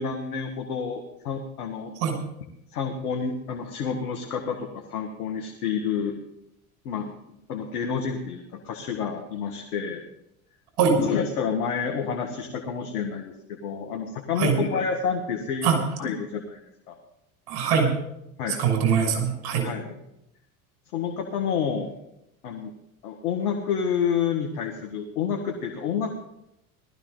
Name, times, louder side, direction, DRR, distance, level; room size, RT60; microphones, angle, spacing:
voice 1, 0.0-2.0 2.7-6.2 6.9-7.1 7.5-10.0 10.9-16.6 16.9-17.0 18.4-18.6 19.6-20.0 20.9-21.9 22.4-22.7 23.0-26.1, left 6 dB, 85° left, 3 dB, 1.8 m, -29 dB
voice 2, 17.5-17.9 18.6-19.6, right 6 dB, 70° right, 2 dB, 6.2 m, -22 dB
19.0 x 13.5 x 4.0 m, 0.82 s
hypercardioid pair, 75°, 44 cm